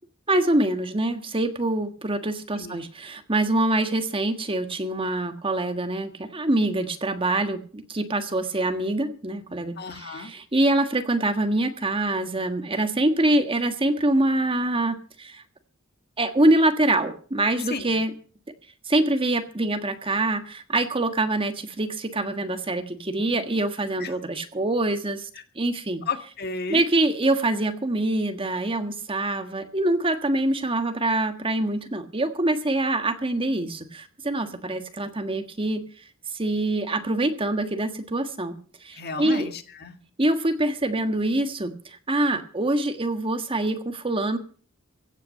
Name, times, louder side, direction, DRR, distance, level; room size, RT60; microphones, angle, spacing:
voice 1, 0.3-15.4 16.2-18.1 18.9-25.3 25.5-26.0 26.7-35.8 36.3-39.5 40.2-44.4, right 2 dB, 25° right, 8 dB, 1.5 m, -25 dB
voice 2, 2.6-2.9 9.8-10.3 17.6-18.0 24.0-24.2 26.1-26.9 38.9-40.0, left 4 dB, 50° left, 7 dB, 1.9 m, -33 dB
16.0 x 9.3 x 6.6 m, 0.42 s
head